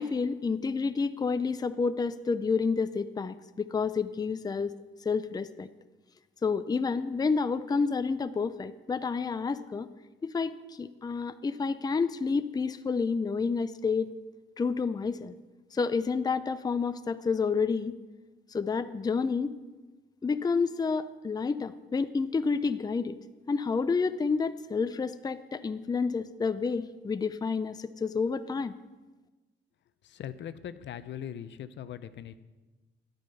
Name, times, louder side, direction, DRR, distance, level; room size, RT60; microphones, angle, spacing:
voice 1, 0.0-4.7 5.0-5.7 6.4-9.9 10.2-14.1 14.6-15.4 15.7-17.9 18.5-19.5 20.2-23.2 23.5-28.7, left 4 dB, 20° left, 11 dB, 0.5 m, -29 dB
voice 2, 30.1-32.3, left 9 dB, 65° left, 13 dB, 0.7 m, -40 dB
12.0 x 8.9 x 5.4 m, 1.2 s
cardioid pair, 90°, 20 cm